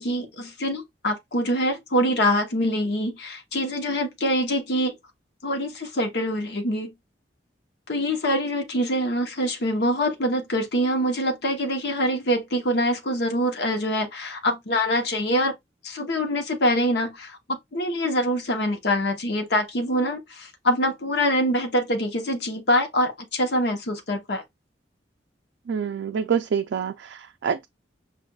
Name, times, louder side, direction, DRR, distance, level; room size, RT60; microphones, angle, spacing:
voice 1, 0.0-5.0 5.4-6.9 7.9-15.5 15.8-24.4, equal, 65° left, 0.9 m, -24 dB
voice 2, 25.7-27.7, right 7 dB, 70° right, 0.3 m, -26 dB
5.4 x 2.4 x 2.3 m
head